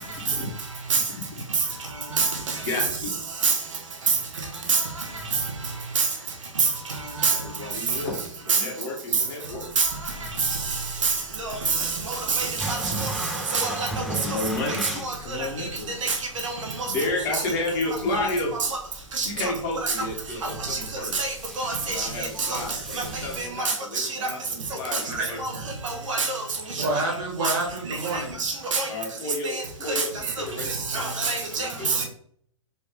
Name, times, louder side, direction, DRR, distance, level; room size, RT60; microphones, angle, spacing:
voice 1, 1.7-2.2 2.6-3.2 7.3-8.2 8.4-9.7 13.9-15.9 16.8-18.5 19.2-21.1 21.8-25.4 25.8-25.9 28.9-32.0, left 2 dB, 40° left, 1.5 m, -32 dB
sound 1, 9.6-23.5, right 1 dB, ahead, 1.2 m, -39 dB
voice 2, 12.3-12.8 13.5-13.9 16.0-16.1 16.4-16.5 19.2-19.3 19.8-19.9 21.2-22.1 24.0-24.1 25.8-26.4 27.4-27.5 28.4-28.9 30.9-31.7, right 5 dB, 65° right, 1.1 m, -24 dB
voice 3, 24.9-25.6 26.8-28.4, right 2 dB, 40° right, 1.6 m, -29 dB
4.3 x 2.7 x 3.6 m
figure-of-eight pair, 110°, 17 cm